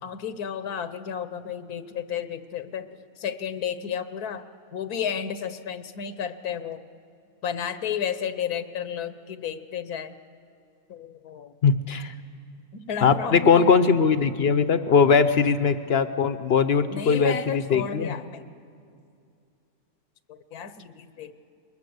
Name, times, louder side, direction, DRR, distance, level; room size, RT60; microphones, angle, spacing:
voice 1, 0.0-2.9 3.2-4.5 4.7-6.9 7.4-10.2 10.9-11.5 12.7-13.7 16.9-18.5 20.3-21.4, left 8 dB, 85° left, 12 dB, 1.4 m, -32 dB
voice 2, 11.6-12.1 13.0-18.1, left 5 dB, 55° left, 12 dB, 0.8 m, -20 dB
21.5 x 21.0 x 8.0 m, 2.4 s
omnidirectional pair, 1.6 m